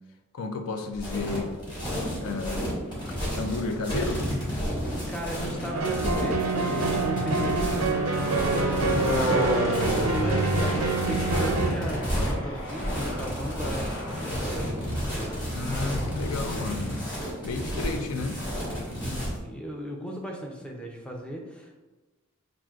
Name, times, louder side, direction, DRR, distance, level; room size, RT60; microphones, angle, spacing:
voice 1, 0.3-1.6 2.2-2.8 3.4-4.3 15.5-17.0 17.4-18.4, left 3 dB, 85° left, 6 dB, 0.4 m, -32 dB
sound 1, 0.9-19.4, equal, 20° left, 1.2 m, -31 dB
sound 2, 1.0-1.8 2.6-16.6, left 1 dB, 65° left, 0.8 m, -33 dB
voice 2, 4.8-8.1 8.8-14.9 19.0-21.7, equal, 5° left, 0 dB, 0.4 m, -36 dB
sound 3, 5.7-11.7, right 5 dB, 80° right, 0.4 m, -27 dB
5.8 x 2.5 x 2.4 m, 1.1 s
head